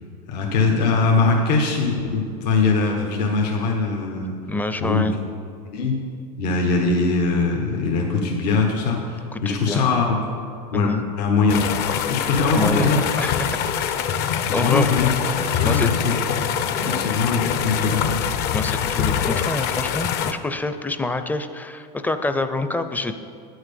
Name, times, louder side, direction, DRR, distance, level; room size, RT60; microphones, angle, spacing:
voice 1, 0.3-4.3 4.8-5.1 5.7-6.0 6.4-10.1 10.7-11.6 12.1-13.3 14.5-15.1 15.5-16.2 16.9-18.0, left 4 dB, 80° left, 1 dB, 1.3 m, -21 dB
voice 2, 4.5-5.2 9.3-9.8 10.7-11.0 12.5-12.9 13.2-14.0 14.5-14.9 15.4-15.9 16.8-17.1 18.5-23.1, left 2 dB, 10° left, 9 dB, 0.5 m, -27 dB
sound 1, 11.5-20.3, left 8 dB, 50° left, 0.7 m, -24 dB
9.1 x 6.3 x 6.9 m, 2.5 s
supercardioid pair, 110°, 21 cm